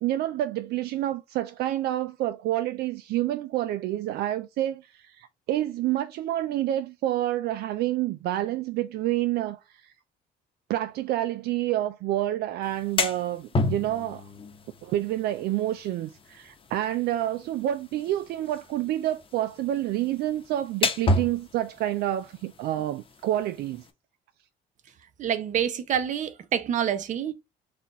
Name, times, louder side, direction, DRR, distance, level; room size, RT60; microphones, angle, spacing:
voice 1, 0.0-9.9 10.7-14.3 14.8-23.8, right 13 dB, 70° right, 0.4 m, -28 dB
sound 1, 12.6-23.9, left 2 dB, 30° left, 0.9 m, -33 dB
voice 2, 25.2-27.3, right 9 dB, 45° right, 0.8 m, -27 dB
4.2 x 2.5 x 4.0 m
cardioid pair, 110°, 17 cm